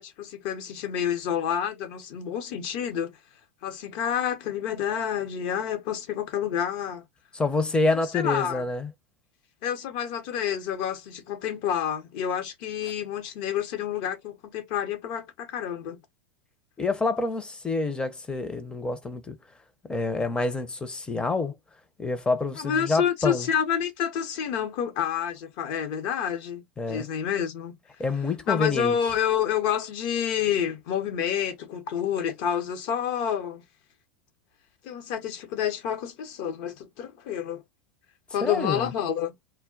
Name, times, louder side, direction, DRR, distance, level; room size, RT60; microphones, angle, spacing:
voice 1, 0.0-3.1 3.6-7.0 8.1-8.7 9.6-16.0 22.6-26.6 26.9-27.7 28.5-33.6 34.8-37.6 38.3-39.3, left 8 dB, 55° left, 0.8 m, -29 dB
voice 2, 7.3-8.9 16.8-19.4 19.8-21.6 22.0-23.5 26.8-27.1 28.0-29.0 38.4-38.9, left 3 dB, 15° left, 0.6 m, -27 dB
2.2 x 2.1 x 3.7 m
hypercardioid pair, 90°, 7 cm